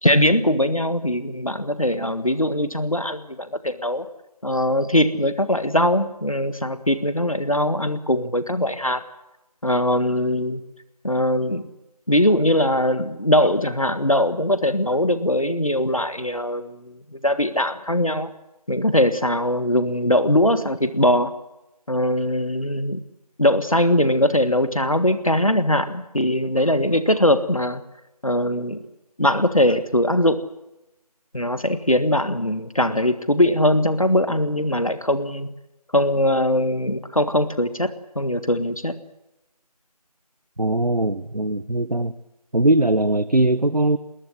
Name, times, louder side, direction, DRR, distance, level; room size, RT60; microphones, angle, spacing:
voice 1, 0.0-4.0 4.4-9.0 9.6-10.6 11.0-11.7 12.1-18.3 18.7-21.3 21.9-23.0 23.4-27.8 28.2-28.8 29.2-30.4 31.3-35.5 35.9-39.0, left 1 dB, 60° left, 12 dB, 1.7 m, -21 dB
voice 2, 40.6-42.1 42.5-44.0, right 1 dB, 75° right, 12 dB, 1.3 m, -20 dB
20.0 x 20.0 x 8.2 m, 0.94 s
figure-of-eight pair, 180°, 20 cm